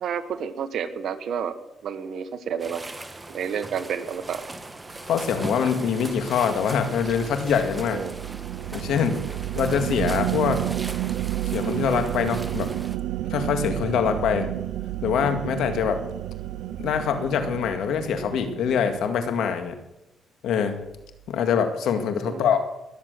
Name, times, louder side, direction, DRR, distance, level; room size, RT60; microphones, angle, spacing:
voice 1, 0.0-1.6 1.8-2.8 3.3-4.4 7.9-8.1 22.3-22.6, right 7 dB, 65° right, 10 dB, 1.5 m, -30 dB
sound 1, 2.6-13.0, right 2 dB, 15° right, 1.5 m, -39 dB
voice 2, 5.1-8.0 8.7-9.2 9.6-10.6 11.5-12.7 13.3-14.5 15.0-16.0 16.8-19.8 20.4-20.8 21.3-22.6, left 7 dB, 80° left, 7 dB, 2.0 m, -24 dB
sound 2, 5.2-19.6, right 14 dB, 85° right, 0.5 m, -31 dB
20.5 x 7.5 x 8.0 m, 0.94 s
cardioid pair, 90°, 0 cm